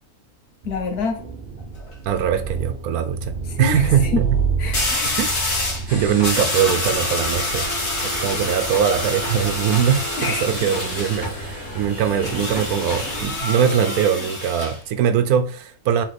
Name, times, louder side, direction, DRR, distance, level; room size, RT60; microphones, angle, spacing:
voice 1, 0.6-1.2 3.5-3.9 4.1-4.2 4.6-5.2 5.9-6.0 10.2-10.5, left 4 dB, 80° left, 1.5 m, -27 dB
sound 1, 0.6-13.4, right 5 dB, 45° right, 0.9 m, -31 dB
sound 2, 1.6-1.9 4.7-5.9 6.2-11.2 12.2-14.8, left 2 dB, 55° left, 1.6 m, -26 dB
voice 2, 2.0-4.4 5.2-5.3 5.8-7.7 8.0-16.1, right 8 dB, 75° right, 1.1 m, -21 dB
sound 3, 5.9-13.2, equal, 35° left, 2.2 m, -33 dB
4.0 x 3.7 x 3.3 m
omnidirectional pair, 1.6 m